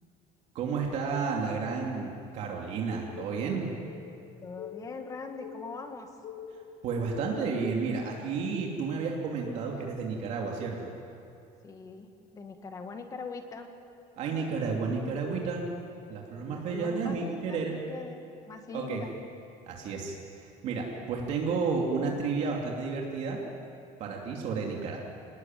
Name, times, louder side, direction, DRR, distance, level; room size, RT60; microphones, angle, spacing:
voice 1, 0.5-3.7 6.8-10.9 14.2-15.7 16.1-17.7 18.7-19.0 19.7-23.4 24.0-25.0, right 4 dB, 45° right, -1 dB, 2.8 m, -31 dB
sound 1, 2.9-7.7, left 8 dB, 50° left, 1.8 m, -46 dB
voice 2, 4.4-6.1 11.6-13.7 16.5-18.2 18.5-19.1, left 4 dB, 20° left, 5 dB, 1.8 m, -42 dB
27.5 x 20.0 x 9.3 m, 2.7 s
cardioid pair, 180°, 16 cm